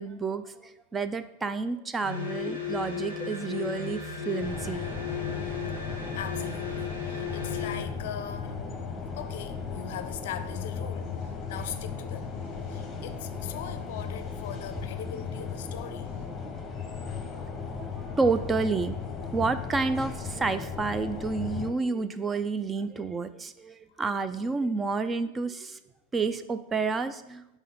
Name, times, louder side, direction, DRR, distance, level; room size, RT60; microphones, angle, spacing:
voice 1, 0.0-4.8 17.7-25.8 26.1-27.6, right 4 dB, 15° right, 11 dB, 0.3 m, -30 dB
sound 1, 2.0-7.9, left 6 dB, 70° right, 1.6 m, -35 dB
sound 2, 4.4-21.7, left 5 dB, 20° left, 0.8 m, -36 dB
sound 3, 5.1-16.2, right 6 dB, 45° right, 1.4 m, -54 dB
voice 2, 6.1-8.9 9.1-12.3 12.7-16.1, left 9 dB, 55° left, 10 dB, 0.5 m, -40 dB
5.5 x 3.5 x 5.5 m, 0.92 s
figure-of-eight pair, 90°, 0 cm